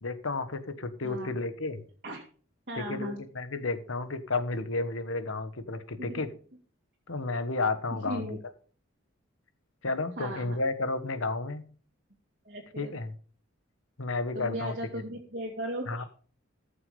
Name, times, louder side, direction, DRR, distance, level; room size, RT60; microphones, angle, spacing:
voice 1, 0.0-1.8 2.7-6.3 7.1-8.3 9.8-11.6 12.8-13.1 14.0-14.7 15.9-16.0, left 3 dB, 80° left, 11 dB, 1.3 m, -32 dB
voice 2, 2.7-3.2 6.1-6.2 8.0-8.4 10.2-10.6 12.4-12.9 14.3-16.1, equal, 45° right, -1 dB, 2.3 m, -37 dB
15.0 x 6.9 x 5.3 m, 0.43 s
head